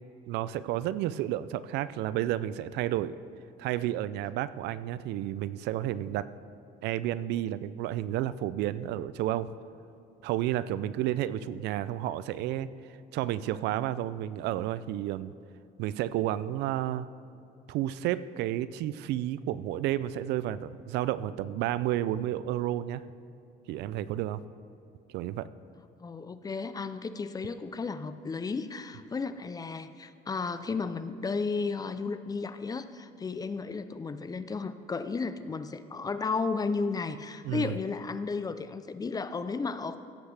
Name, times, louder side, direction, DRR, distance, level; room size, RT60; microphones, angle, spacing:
voice 1, 0.3-3.2 3.6-6.3 6.8-9.5 10.2-12.7 13.1-15.3 15.8-17.1 17.7-23.0 23.7-24.4 25.1-25.5 37.4-37.8, right 13 dB, 85° right, 16 dB, 0.4 m, -31 dB
voice 2, 26.0-40.0, left 4 dB, 20° left, 12 dB, 0.5 m, -33 dB
16.5 x 8.0 x 3.4 m, 2.8 s
cardioid pair, 110°, 17 cm